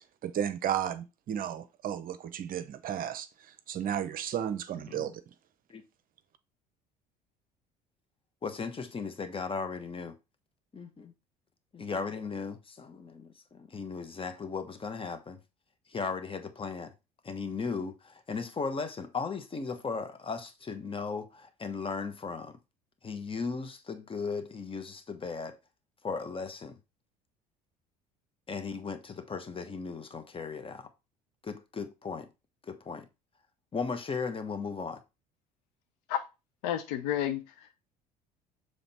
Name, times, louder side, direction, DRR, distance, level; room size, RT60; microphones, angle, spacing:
voice 1, 0.0-3.3 3.7-5.2, right 9 dB, 40° right, 0.7 m, -33 dB
voice 2, 8.4-10.1 10.7-11.1 11.7-15.4 15.9-16.9 17.2-22.6 23.0-25.6 26.0-26.8 28.5-30.9 31.4-32.3 32.6-33.1 33.7-35.0, left 5 dB, 25° left, 1.2 m, -36 dB
voice 3, 36.6-37.8, left 11 dB, 65° left, 0.9 m, -31 dB
7.1 x 3.4 x 4.2 m
figure-of-eight pair, 60°, 21 cm